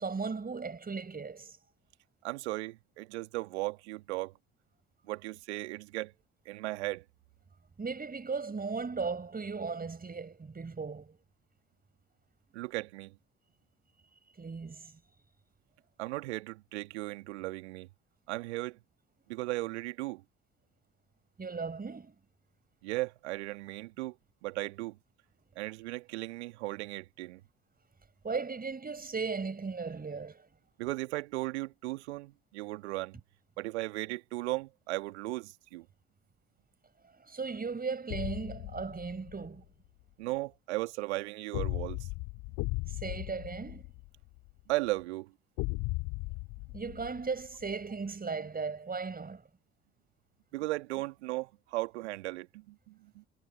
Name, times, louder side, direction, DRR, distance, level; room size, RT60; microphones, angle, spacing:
voice 1, 0.0-1.6 7.8-11.2 14.4-14.9 21.4-22.2 28.2-30.5 37.2-39.6 42.9-43.9 46.7-49.4, right 4 dB, 25° right, 6.1 m, -37 dB
voice 2, 2.2-4.3 5.0-6.1 6.5-7.0 12.5-13.1 16.0-17.9 18.3-18.8 19.3-20.2 22.8-24.2 24.4-25.0 25.6-27.4 30.8-33.2 33.6-35.9 40.2-42.0 44.7-45.3 50.5-53.2, right 20 dB, 75° right, 2.0 m, -36 dB
sound 1, 38.1-39.5 41.5-44.5 45.6-47.7, left 26 dB, 65° left, 6.2 m, -37 dB
figure-of-eight pair, 55°, 35 cm